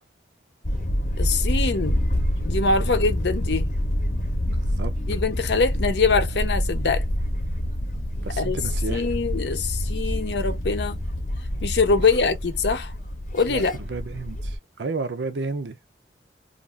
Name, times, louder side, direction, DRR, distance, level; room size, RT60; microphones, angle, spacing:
sound 1, 0.6-14.6, equal, 45° left, 0.7 m, -27 dB
voice 1, 1.2-2.0 2.4-3.7 5.1-7.1 8.4-8.6 8.9-11.0 11.6-12.9 13.3-13.7, left 4 dB, 80° left, 0.6 m, -23 dB
voice 2, 4.4-4.9 8.2-9.0 13.5-13.6 13.9-14.5 14.8-15.8, right 3 dB, 90° right, 0.6 m, -31 dB
2.5 x 2.4 x 3.2 m
head